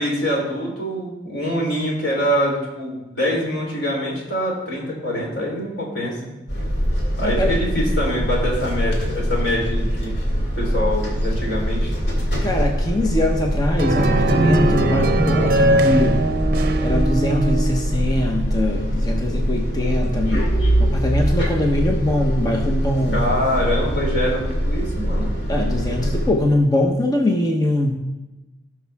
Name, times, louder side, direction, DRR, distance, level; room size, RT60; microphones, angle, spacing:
voice 1, 0.0-6.2 7.2-10.2 10.6-11.9 23.1-25.4, equal, 85° left, -2 dB, 3.6 m, -24 dB
sound 1, 6.5-26.3, equal, 65° left, 2.2 m, -22 dB
voice 2, 7.2-7.5 12.4-16.2 16.8-23.4 25.5-27.9, left 1 dB, 20° left, 2 dB, 0.9 m, -22 dB
sound 2, 13.8-18.0, right 2 dB, 55° right, 0.7 m, -21 dB
17.5 x 5.8 x 3.4 m, 1.1 s
head